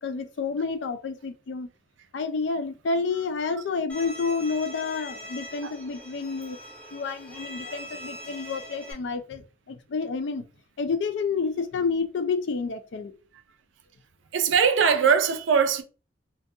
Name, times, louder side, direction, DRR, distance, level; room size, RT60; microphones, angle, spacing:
voice 1, 0.0-1.7 2.1-6.6 6.9-10.4 10.8-13.1, left 4 dB, 70° left, 0.4 m, -29 dB
Bowed string instrument, 3.9-8.9, equal, 5° left, 0.6 m, -42 dB
voice 2, 14.3-15.8, right 6 dB, 80° right, 0.4 m, -21 dB
2.6 x 2.2 x 2.6 m
head